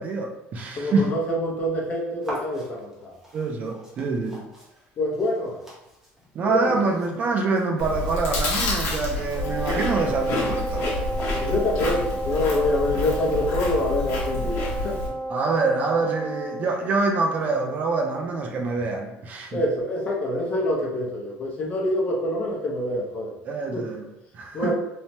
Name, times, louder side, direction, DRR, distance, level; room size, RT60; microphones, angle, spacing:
voice 1, 0.0-1.1 3.3-4.4 6.3-10.9 15.3-19.6 23.4-24.0 24.3-24.7, right 3 dB, 35° right, 2 dB, 0.3 m, -25 dB
voice 2, 0.7-3.2 5.0-5.6 6.4-6.7 11.4-15.0 19.5-23.3 23.7-23.8 24.5-24.7, left 1 dB, 30° left, -2 dB, 0.6 m, -26 dB
sound 1, 2.2-11.8, equal, 10° right, 0.8 m, -44 dB
Chewing mastication, 7.8-15.1, left 2 dB, 70° left, 0.8 m, -28 dB
Wind instrument woodwind instrument, 9.3-16.6, right 2 dB, 80° right, 1.4 m, -31 dB
3.1 x 2.1 x 2.7 m, 0.88 s
cardioid pair, 155°, 5 cm